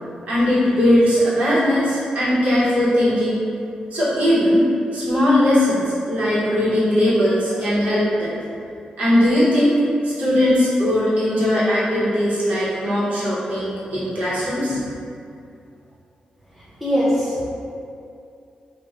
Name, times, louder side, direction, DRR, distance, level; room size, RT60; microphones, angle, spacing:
voice 1, 0.3-3.4 3.9-4.6 4.9-5.8 6.1-8.4 9.0-9.7 10.0-14.8, left 1 dB, 60° right, -10 dB, 0.9 m, -19 dB
voice 2, 16.5-17.5, equal, ahead, -9 dB, 0.6 m, -22 dB
2.9 x 2.1 x 2.5 m, 2.5 s
wide cardioid pair, 125°, 3 cm